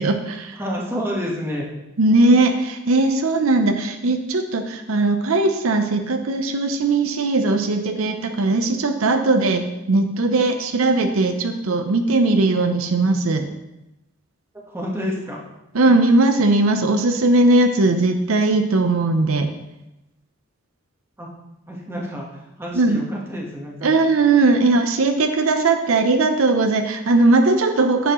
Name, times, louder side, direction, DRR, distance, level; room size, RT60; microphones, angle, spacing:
voice 1, 0.0-0.5 2.0-13.5 15.7-19.5 22.7-23.0 23.8-28.1, right 2 dB, 80° right, 6 dB, 0.7 m, -19 dB
voice 2, 0.5-1.7 14.7-15.4 21.2-21.3 21.7-22.3 22.6-23.9, equal, 10° right, -2 dB, 1.3 m, -28 dB
9.8 x 7.0 x 3.1 m, 0.93 s
head